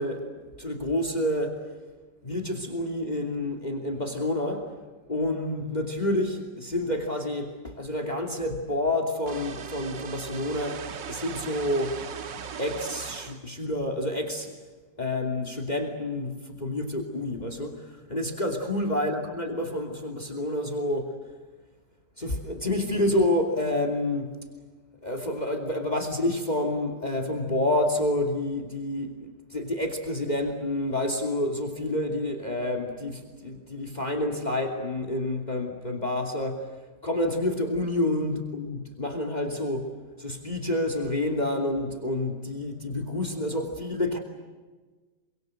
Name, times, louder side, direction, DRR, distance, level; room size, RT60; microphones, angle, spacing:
voice 1, 0.0-1.6 2.2-4.7 5.1-12.0 12.6-14.5 15.0-21.2 22.2-24.4 25.0-36.7 37.0-44.2, left 1 dB, 25° left, 6 dB, 2.9 m, -29 dB
sound 1, 9.3-13.4, right 7 dB, 85° right, 2.1 m, -38 dB
27.5 x 25.0 x 7.9 m, 1.3 s
omnidirectional pair, 1.9 m